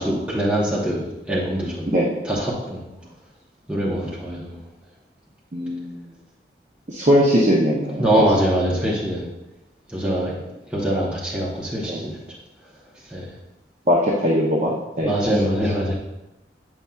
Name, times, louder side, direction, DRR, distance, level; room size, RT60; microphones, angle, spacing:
voice 1, 0.0-1.9 2.2-2.8 3.7-4.6 8.0-9.3 9.9-12.2 13.1-13.3 15.0-15.9, equal, 5° right, -6 dB, 1.0 m, -23 dB
voice 2, 5.5-6.0 6.9-8.1 11.9-12.0 13.9-15.1, equal, 40° right, -4 dB, 0.7 m, -20 dB
8.8 x 5.4 x 2.3 m, 0.95 s
head